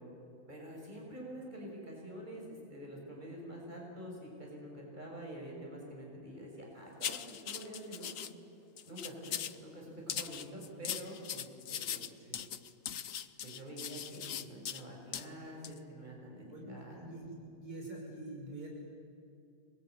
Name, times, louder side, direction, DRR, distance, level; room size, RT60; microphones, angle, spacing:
voice 1, 0.5-8.1 8.8-12.1 13.4-17.1, right 1 dB, 25° right, -1 dB, 6.5 m, -47 dB
sound 1, 7.0-8.3 8.8-9.6 10.1-14.8 15.1-15.3 15.6-15.8, left 9 dB, 55° left, 1.2 m, -40 dB
voice 2, 16.5-17.3 17.6-18.7, right 2 dB, 70° right, -2 dB, 6.2 m, -45 dB
26.5 x 21.0 x 9.5 m, 2.6 s
omnidirectional pair, 1.8 m